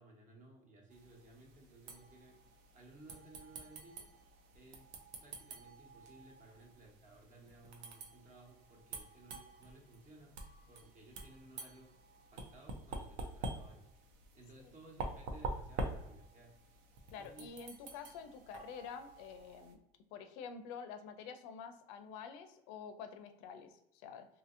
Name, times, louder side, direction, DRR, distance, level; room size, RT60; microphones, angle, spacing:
voice 1, 0.0-2.4 2.7-4.1 4.5-10.4 10.7-11.9 12.3-13.8 14.3-16.5 17.2-17.5, right 2 dB, 45° right, 0 dB, 1.1 m, -58 dB
sound 1, 0.9-19.8, right 2 dB, 75° right, 0.5 m, -47 dB
voice 2, 17.1-19.8 20.1-24.3, left 6 dB, 80° left, 8 dB, 0.4 m, -48 dB
2.8 x 2.7 x 2.5 m, 0.82 s
supercardioid pair, 95°, 19 cm